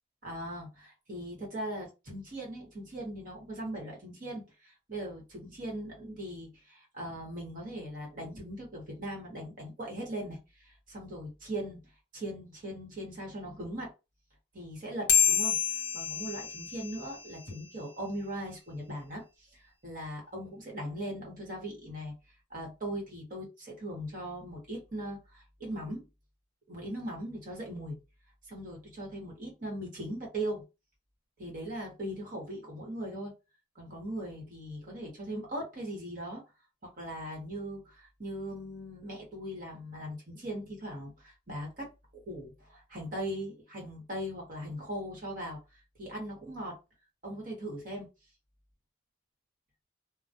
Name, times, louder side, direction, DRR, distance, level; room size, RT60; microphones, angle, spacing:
voice 1, 0.2-11.8 12.1-13.9 14.5-22.1 22.5-26.1 26.7-28.0 28.5-30.6 31.4-33.3 33.7-36.4 36.8-45.6 46.0-46.8 47.2-48.1, right 1 dB, 45° right, 1.0 m, -39 dB
sound 1, 15.1-17.9, left 7 dB, 50° left, 0.7 m, -29 dB
2.3 x 2.0 x 2.6 m
head